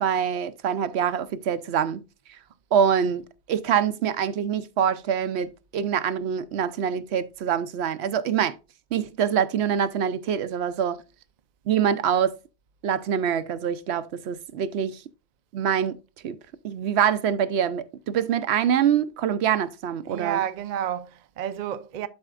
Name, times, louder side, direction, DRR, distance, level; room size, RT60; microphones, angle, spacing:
voice 1, 0.0-2.0 2.7-3.2 3.5-8.5 8.9-11.0 11.7-12.3 12.8-15.0 15.5-16.0 16.2-16.4 16.6-20.4, right 8 dB, 75° right, 0.9 m, -25 dB
voice 2, 20.0-22.1, right 10 dB, 55° right, 0.5 m, -30 dB
12.5 x 4.3 x 2.4 m
omnidirectional pair, 1.1 m